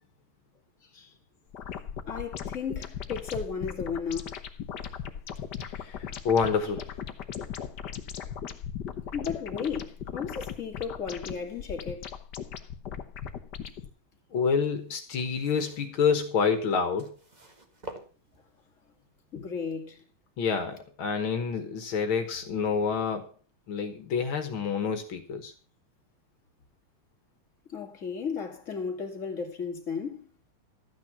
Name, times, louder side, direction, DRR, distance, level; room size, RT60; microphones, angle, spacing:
sound 1, 1.5-13.9, left 8 dB, 60° left, 1.6 m, -38 dB
voice 1, 2.1-4.3 9.1-12.1 19.3-20.0 27.7-30.3, left 6 dB, 35° left, 2.7 m, -34 dB
voice 2, 5.6-6.9 14.3-17.2 20.4-23.3 23.7-25.5, left 6 dB, 75° left, 2.1 m, -28 dB
sound 2, 14.5-18.7 19.5-19.6, right 2 dB, 20° right, 1.7 m, -48 dB
13.0 x 9.4 x 5.9 m
omnidirectional pair, 2.2 m